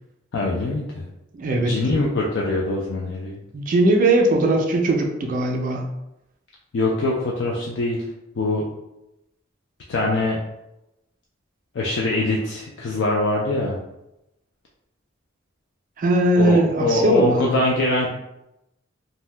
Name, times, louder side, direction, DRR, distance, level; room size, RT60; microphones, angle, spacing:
voice 1, 0.3-1.1 1.6-3.4 6.7-8.0 8.4-8.7 9.9-10.4 11.7-13.8 16.4-18.1, left 2 dB, 60° left, -2 dB, 0.4 m, -23 dB
voice 2, 1.3-1.7 3.5-5.9 16.0-17.5, right 1 dB, 40° right, 2 dB, 0.4 m, -19 dB
2.6 x 2.1 x 3.2 m, 0.89 s
head